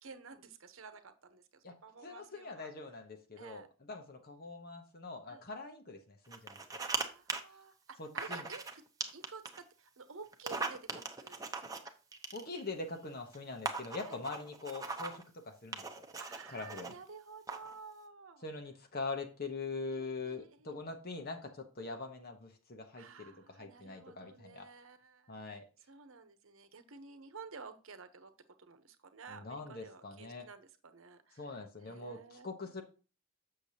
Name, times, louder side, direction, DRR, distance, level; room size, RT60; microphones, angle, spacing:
voice 1, 0.0-2.7 3.4-3.7 5.3-5.4 6.8-8.6 9.1-11.9 14.1-14.2 16.2-18.4 19.9-20.7 23.0-25.3 25.9-28.3 28.6-31.6 31.8-32.7, right 4 dB, 65° right, 9 dB, 1.0 m, -52 dB
voice 2, 2.0-6.8 8.0-8.5 12.3-16.0 16.5-17.0 18.4-24.7 25.3-25.6 29.3-30.5 31.4-32.8, left 3 dB, 45° left, 4 dB, 1.0 m, -43 dB
sound 1, 6.3-7.0 7.3-7.4 8.2-8.7 9.0-9.6 10.3-12.7 13.3-13.4 13.7-15.2 15.7-16.9 17.5-17.8, right 4 dB, 15° right, 0.9 m, -39 dB
7.8 x 6.7 x 2.8 m, 0.34 s
head